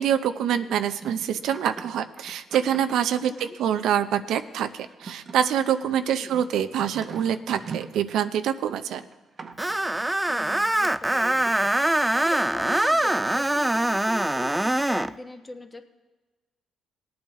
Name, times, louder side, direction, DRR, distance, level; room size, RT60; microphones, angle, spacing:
voice 1, 0.0-9.0, right 9 dB, 80° right, 10 dB, 0.6 m, -25 dB
sound 1, 0.8-3.8 4.8-8.3 8.9-9.8, right 5 dB, 45° right, 0.8 m, -43 dB
voice 2, 3.3-3.6 6.2-6.3 10.3-15.8, left 2 dB, 20° left, 6 dB, 1.2 m, -40 dB
Screech, 9.6-15.1, right 1 dB, 10° right, 0.3 m, -23 dB
19.0 x 8.6 x 3.6 m, 1.2 s
cardioid pair, 90°, 0 cm